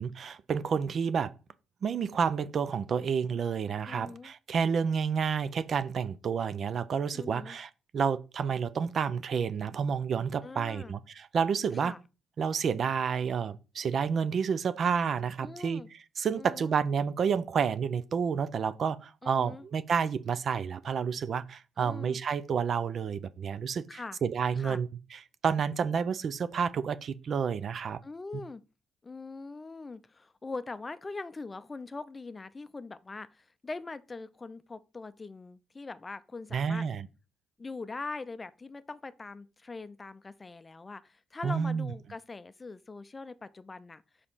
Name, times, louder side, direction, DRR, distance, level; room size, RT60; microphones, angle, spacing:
voice 1, 0.0-1.3 1.8-11.9 12.4-28.0 36.5-37.1 41.4-41.9, right 6 dB, 55° right, 0.5 m, -30 dB
voice 2, 3.9-4.3 7.1-7.6 10.4-10.9 11.7-12.0 15.4-15.9 16.4-16.7 19.2-19.6 21.8-22.2 23.9-24.2 24.6-24.8 28.0-28.6 29.0-36.9 37.6-44.0, left 3 dB, 25° left, 0.5 m, -42 dB
5.0 x 4.2 x 5.6 m
cardioid pair, 90°, 0 cm